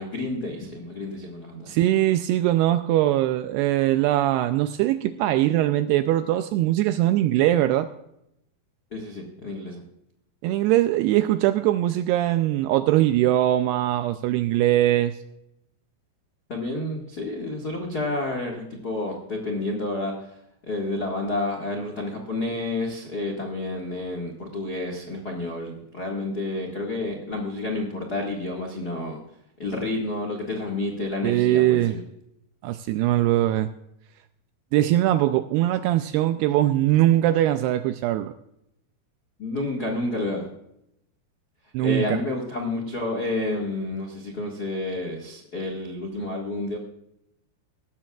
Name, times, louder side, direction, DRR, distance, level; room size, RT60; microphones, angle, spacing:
voice 1, 0.0-1.7 8.9-9.8 16.5-20.1 20.7-29.2 29.6-32.0 39.4-40.5 41.8-46.8, left 2 dB, 85° left, 1 dB, 0.8 m, -30 dB
voice 2, 1.7-7.9 10.4-15.1 31.2-31.9 32.6-33.7 34.7-38.3 41.7-42.2, right 14 dB, 85° right, 10 dB, 2.3 m, -21 dB
17.5 x 13.5 x 2.4 m, 0.79 s
omnidirectional pair, 5.1 m